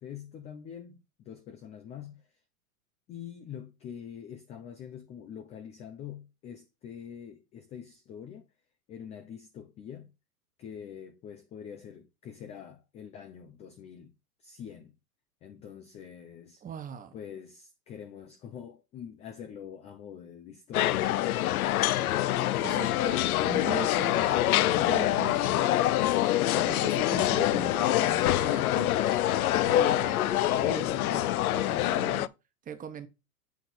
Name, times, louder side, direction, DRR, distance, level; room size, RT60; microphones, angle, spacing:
voice 1, 0.0-2.2 3.1-8.5 8.9-10.1 10.6-14.1 14.4-14.9 15.4-16.6 17.1-21.9 29.5-29.8, left 8 dB, 15° left, 0.4 m, -45 dB
voice 2, 16.6-17.1 22.6-29.0 29.6-32.3 32.6-33.1, right 7 dB, 20° right, 1.1 m, -40 dB
sound 1, 20.7-32.3, left 14 dB, 70° left, 0.6 m, -25 dB
8.2 x 3.8 x 4.3 m
hypercardioid pair, 120°, 46 cm